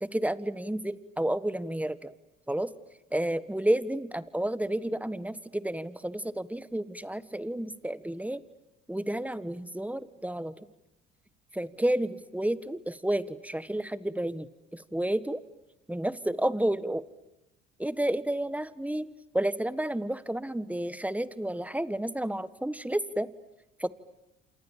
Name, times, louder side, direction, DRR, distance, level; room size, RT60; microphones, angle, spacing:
voice 1, 0.0-2.1 2.5-2.7 3.1-8.4 8.9-10.5 11.5-14.5 14.7-15.4 15.9-17.0 17.8-19.1 19.3-23.3 23.8-23.9, right 1 dB, 5° right, 15 dB, 1.4 m, -31 dB
29.0 x 27.0 x 7.5 m, 0.96 s
supercardioid pair, 70°, 29 cm